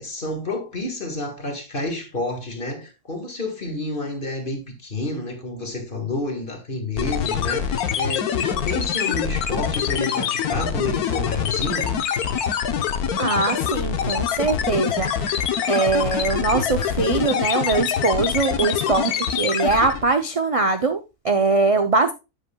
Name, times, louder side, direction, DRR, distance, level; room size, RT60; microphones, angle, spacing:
voice 1, 0.0-12.0, left 2 dB, 35° left, 1.8 m, -29 dB
sound 1, 7.0-20.1, left 8 dB, 80° left, 1.3 m, -24 dB
voice 2, 13.2-22.1, right 3 dB, 55° right, 0.3 m, -22 dB
10.5 x 7.9 x 2.2 m
omnidirectional pair, 1.6 m